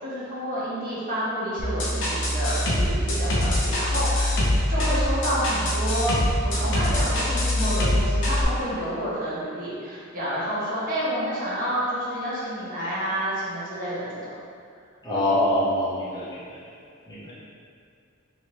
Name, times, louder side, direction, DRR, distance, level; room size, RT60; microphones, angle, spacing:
voice 1, 0.0-4.4 4.7-6.1 6.4-14.3, equal, 40° right, -9 dB, 1.0 m, -29 dB
sound 1, 1.6-8.4, left 1 dB, 65° left, 0.6 m, -24 dB
voice 2, 15.0-16.6 17.1-17.3, left 1 dB, 20° left, -11 dB, 0.9 m, -25 dB
3.3 x 2.9 x 3.0 m, 2.2 s
head